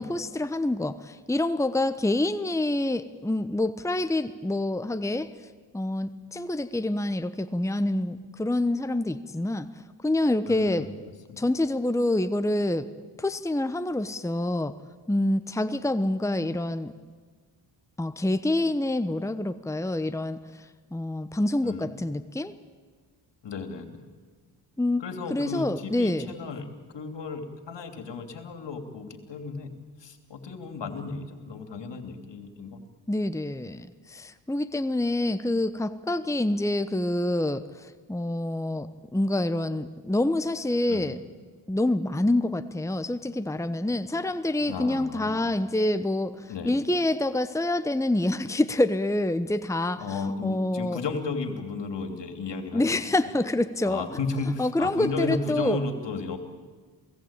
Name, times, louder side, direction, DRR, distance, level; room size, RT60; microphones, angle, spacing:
voice 1, 0.0-5.3 5.7-9.7 10.0-10.9 11.4-12.9 13.2-14.7 15.1-16.9 18.0-22.5 24.8-25.0 25.3-26.3 33.1-41.2 41.7-51.0 52.7-54.0 54.6-55.8, left 1 dB, 5° left, 10 dB, 1.1 m, -27 dB
voice 2, 10.4-10.9 11.3-11.4 21.6-21.9 23.4-24.0 25.0-26.7 26.9-29.7 30.0-32.8 40.9-41.1 44.6-45.4 46.5-46.7 50.0-53.0 53.8-56.4, left 4 dB, 65° left, 7 dB, 3.0 m, -34 dB
28.0 x 18.0 x 8.9 m, 1.6 s
supercardioid pair, 50°, 46 cm